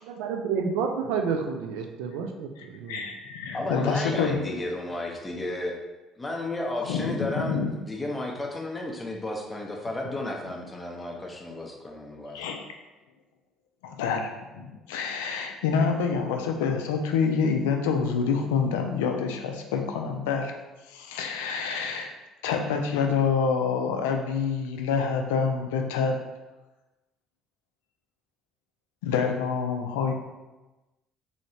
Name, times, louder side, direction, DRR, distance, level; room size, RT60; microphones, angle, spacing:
voice 1, 0.0-3.1, right 6 dB, 80° right, 4 dB, 0.3 m, -30 dB
voice 2, 2.9-4.4 6.8-7.7 12.3-12.6 13.8-20.5 20.9-22.1 22.4-26.2 29.0-30.1, left 5 dB, 85° left, 4 dB, 0.3 m, -27 dB
voice 3, 3.5-5.8 6.2-12.5, left 1 dB, 20° left, 0 dB, 0.6 m, -33 dB
3.0 x 2.7 x 2.7 m, 1.1 s
hypercardioid pair, 65°, 0 cm